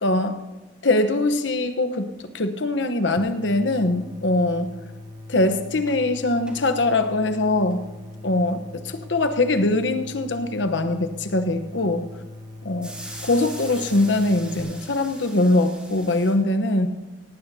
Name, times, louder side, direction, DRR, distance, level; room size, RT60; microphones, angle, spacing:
voice 1, 0.0-0.4 0.8-4.7 5.3-7.8 8.2-12.1 12.6-12.9 13.2-16.9, left 2 dB, 70° left, 9 dB, 1.0 m, -22 dB
sound 1, 3.2-14.6, left 1 dB, 25° right, 0.8 m, -41 dB
sound 2, 5.9-6.7 7.2-7.8 8.7-8.8 12.8-16.3, equal, 5° right, 2.8 m, -41 dB
18.0 x 15.0 x 2.8 m, 1.1 s
head